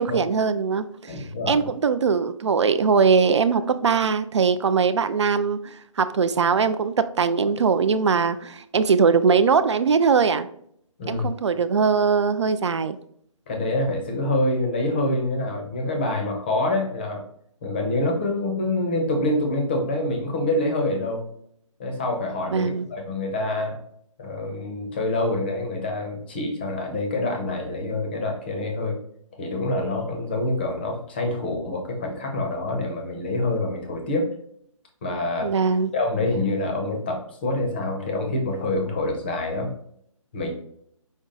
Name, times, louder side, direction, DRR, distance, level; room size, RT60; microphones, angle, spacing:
voice 1, 0.0-10.5 11.1-13.0 22.5-22.9 35.4-35.9, right 5 dB, 55° right, 11 dB, 0.4 m, -21 dB
voice 2, 1.1-1.7 11.0-11.3 13.5-17.2 17.6-21.3 21.8-23.8 24.2-29.0 29.3-34.3 35.0-35.5 35.9-39.7 40.3-40.5, left 2 dB, 20° left, 2 dB, 0.6 m, -26 dB
5.3 x 2.3 x 3.7 m, 0.67 s
hypercardioid pair, 170°, 18 cm